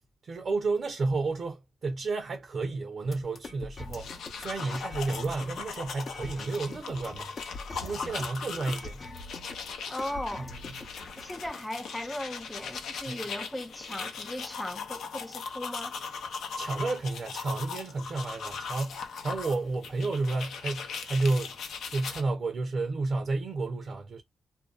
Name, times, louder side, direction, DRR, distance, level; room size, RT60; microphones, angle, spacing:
voice 1, 0.2-7.5 7.8-9.1 13.1-13.2 16.5-24.2, right 3 dB, 55° right, 0.7 m, -31 dB
sound 1, 3.1-11.5, left 2 dB, 50° left, 0.7 m, -43 dB
sound 2, 3.8-22.2, left 5 dB, 85° left, 0.6 m, -39 dB
voice 2, 9.9-10.6 11.2-16.0, left 1 dB, 10° left, 0.5 m, -37 dB
2.6 x 2.2 x 2.3 m
cardioid pair, 90°, 0 cm